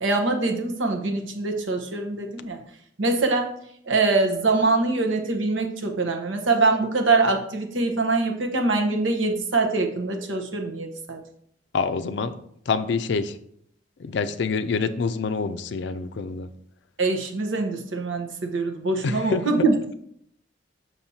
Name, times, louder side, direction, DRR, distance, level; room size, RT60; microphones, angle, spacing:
voice 1, 0.0-2.6 3.0-3.5 3.9-11.2 17.0-19.9, right 3 dB, 85° right, 3 dB, 1.0 m, -24 dB
voice 2, 11.7-12.4 12.7-13.4 14.0-16.5 19.0-19.4, left 5 dB, 60° left, 10 dB, 0.4 m, -26 dB
7.1 x 5.9 x 2.8 m, 0.69 s
head